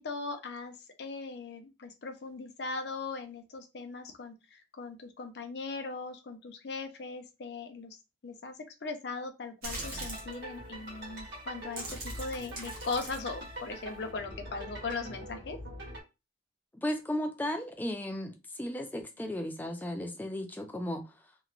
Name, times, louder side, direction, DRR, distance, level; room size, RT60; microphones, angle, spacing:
voice 1, 0.0-8.0 8.2-8.5 8.8-15.6, left 4 dB, 65° left, 0.5 m, -39 dB
sound 1, 9.6-10.3 11.1-11.3 11.6-14.1, right 2 dB, 50° right, 0.8 m, -42 dB
sound 2, 9.7-16.0, equal, 70° right, 1.4 m, -44 dB
voice 2, 16.8-21.0, left 1 dB, 10° left, 0.4 m, -35 dB
2.9 x 2.1 x 2.4 m
head